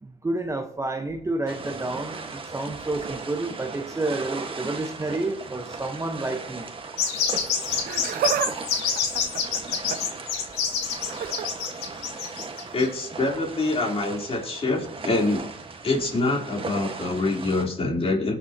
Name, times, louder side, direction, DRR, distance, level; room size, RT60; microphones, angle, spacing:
voice 1, 0.0-6.7, right 2 dB, 20° right, 5 dB, 1.2 m, -30 dB
sound 1, 1.5-17.6, right 4 dB, 35° right, 1.7 m, -37 dB
sound 2, 7.0-13.0, left 7 dB, 90° left, 2.3 m, -27 dB
Laughter, 7.7-8.5 8.8-10.2 11.1-11.5 12.8-12.9 13.9-14.0, right 9 dB, 65° right, 0.8 m, -29 dB
voice 2, 12.7-15.5 15.8-18.4, left 2 dB, 35° left, -1 dB, 4.0 m, -25 dB
20.0 x 7.1 x 3.0 m, 0.64 s
supercardioid pair, 70°, 16 cm